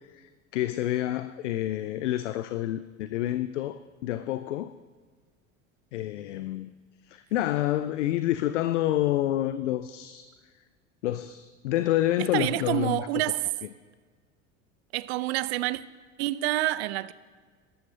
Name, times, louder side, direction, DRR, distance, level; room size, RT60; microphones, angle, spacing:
voice 1, 0.2-4.7 5.9-6.7 7.1-10.3 11.0-13.3, left 13 dB, 65° left, 0.6 m, -28 dB
voice 2, 12.3-13.5 14.9-15.8 16.2-17.1, right 16 dB, 55° right, 0.6 m, -27 dB
21.0 x 12.0 x 2.8 m
figure-of-eight pair, 70°, 40 cm